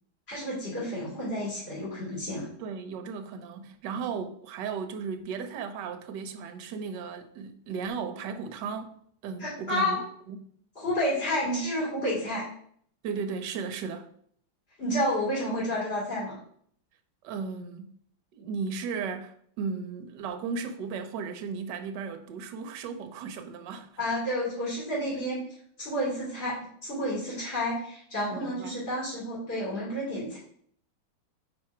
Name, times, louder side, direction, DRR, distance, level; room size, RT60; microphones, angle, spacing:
voice 1, 0.3-2.5 9.4-10.0 10.7-12.5 14.8-16.4 24.0-25.4 25.8-26.6 26.8-30.4, left 1 dB, 30° left, 2.9 m, -30 dB
voice 2, 2.6-8.9 9.2-10.5 13.0-14.1 17.2-17.9 18.3-23.9 28.2-28.8, right 5 dB, 70° right, 1.2 m, -35 dB
4.6 x 4.4 x 4.8 m
omnidirectional pair, 2.2 m